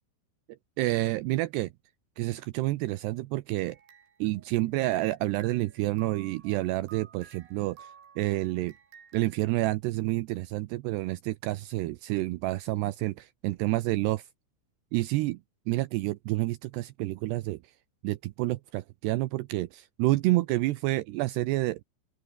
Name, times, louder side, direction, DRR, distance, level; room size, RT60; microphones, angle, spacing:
voice 1, 0.8-1.7 2.2-3.8 4.2-7.9 8.2-8.7 9.1-14.2 14.9-15.4 15.7-17.6 18.0-21.8, right 18 dB, 85° right, 2.3 m, -29 dB
sound 1, 3.7-5.1 5.4-9.7, right 7 dB, 70° right, 6.3 m, -54 dB
open air
omnidirectional pair, 5.8 m